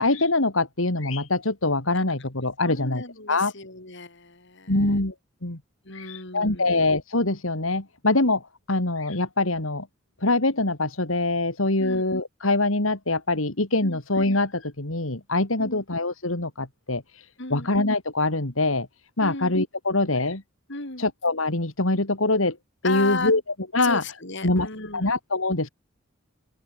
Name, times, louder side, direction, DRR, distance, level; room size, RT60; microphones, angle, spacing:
voice 1, 0.0-3.5 4.7-5.1 5.4-5.6 5.9-8.4 8.7-9.9 10.2-18.9 19.2-20.4 21.0-22.6 22.8-23.4 23.7-24.0 24.4-24.7 24.9-25.7, left 2 dB, 80° left, 3.4 m, -24 dB
voice 2, 2.6-5.0 5.8-6.7 11.8-12.0 13.8-14.0 15.6-15.8 17.4-17.7 19.2-19.6 20.7-21.1 22.8-23.3 23.8-25.1, left 3 dB, 60° left, 7.2 m, -35 dB
open air
head